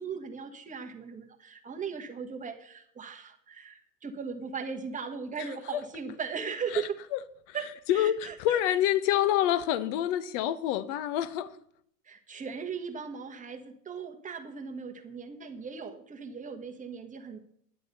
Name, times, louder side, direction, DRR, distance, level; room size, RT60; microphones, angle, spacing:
voice 1, 0.0-7.0 7.5-8.6 12.0-17.4, right 6 dB, 15° right, 1.4 m, -38 dB
voice 2, 5.4-5.8 6.7-6.8 7.5-7.6 7.9-11.6, left 11 dB, 45° left, 1.1 m, -27 dB
11.0 x 7.7 x 6.8 m
hypercardioid pair, 115°, 49 cm